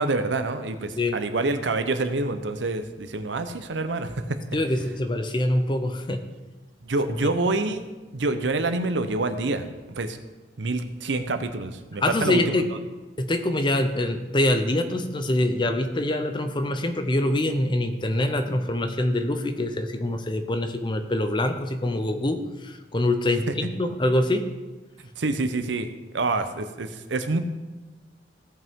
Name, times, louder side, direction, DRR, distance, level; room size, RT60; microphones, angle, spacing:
voice 1, 0.0-4.4 6.8-7.8 8.1-9.7 10.0-10.2 10.6-12.6 23.5-23.6 25.2-25.9 26.1-27.4, right 2 dB, 85° right, 9 dB, 0.7 m, -27 dB
voice 2, 4.5-6.2 7.2-7.3 12.0-12.7 13.2-24.4, left 1 dB, 25° left, 7 dB, 0.6 m, -25 dB
16.5 x 5.5 x 3.6 m, 1.2 s
head